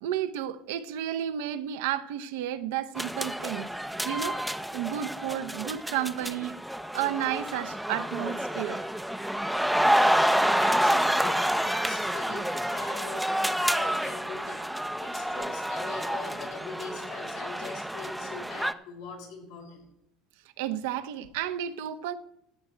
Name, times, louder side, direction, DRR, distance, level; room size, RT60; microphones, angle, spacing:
voice 1, 0.0-3.7 4.0-4.4 4.7-6.6 6.9-8.9 10.3-10.5 20.6-22.1, right 11 dB, 85° right, 0.7 m, -32 dB
sound 1, 3.0-18.7, equal, ahead, 0.5 m, -28 dB
voice 2, 9.9-19.8, left 4 dB, 90° left, 5.2 m, -42 dB
14.0 x 8.7 x 4.5 m
supercardioid pair, 120°, 0 cm